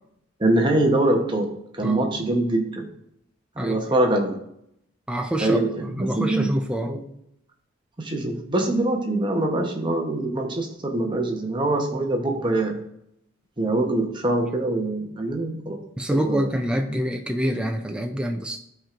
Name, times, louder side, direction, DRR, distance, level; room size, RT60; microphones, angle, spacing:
voice 1, 0.4-1.5 1.7-2.9 3.6-4.4 5.4-6.5 6.9-7.0 8.0-12.8 13.6-15.8 16.1-16.5, right 2 dB, 25° right, 2 dB, 0.9 m, -24 dB
voice 2, 5.1-5.6 6.0-7.0 16.0-18.6, equal, 5° right, 4 dB, 0.3 m, -26 dB
13.0 x 4.4 x 2.5 m, 0.76 s
head